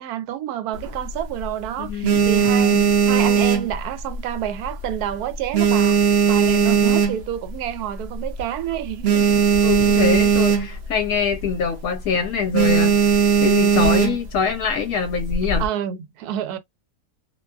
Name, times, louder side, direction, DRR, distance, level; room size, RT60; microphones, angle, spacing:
voice 1, 0.0-6.0 6.2-9.4 15.6-16.6, right 11 dB, 80° right, 1.1 m, -29 dB
sound 1, 0.7-1.5 1.9-4.3 4.6-5.0 5.3-7.5 8.0-8.1 8.3-8.4 8.7-10.9 11.2-11.5 11.8-12.1 12.5-14.4 15.1-15.7, right 7 dB, 65° right, 0.6 m, -18 dB
voice 2, 1.8-2.9 9.6-13.1 13.4-15.7, left 6 dB, 75° left, 1.0 m, -24 dB
2.7 x 2.3 x 2.2 m
omnidirectional pair, 1.6 m